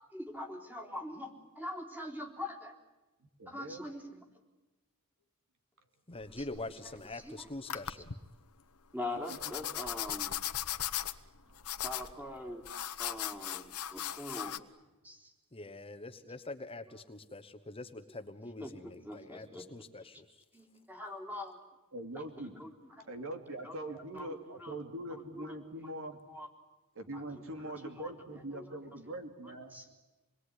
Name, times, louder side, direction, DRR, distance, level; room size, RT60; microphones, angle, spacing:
voice 1, 0.1-2.7 3.5-4.2 6.4-7.5 8.9-10.4 11.8-12.7 13.0-14.6 15.0-15.3 18.6-19.8 20.5-21.6 22.4-23.1 23.5-24.8 25.1-25.9 26.3-26.5 27.1-27.5 27.8-28.7 29.4-29.9, left 1 dB, 10° right, 3 dB, 3.8 m, -44 dB
voice 2, 3.4-3.9 9.3-9.4 11.5-11.6 21.9-22.6 23.0-26.2 26.9-29.8, right 1 dB, 65° right, 6 dB, 3.1 m, -43 dB
sound 1, 6.1-7.2 7.7-8.2 9.3-14.6, left 11 dB, 80° left, 1.2 m, -38 dB
voice 3, 6.1-8.0 15.5-20.2, left 2 dB, 25° left, 10 dB, 1.2 m, -44 dB
27.5 x 21.0 x 9.8 m, 1.1 s
head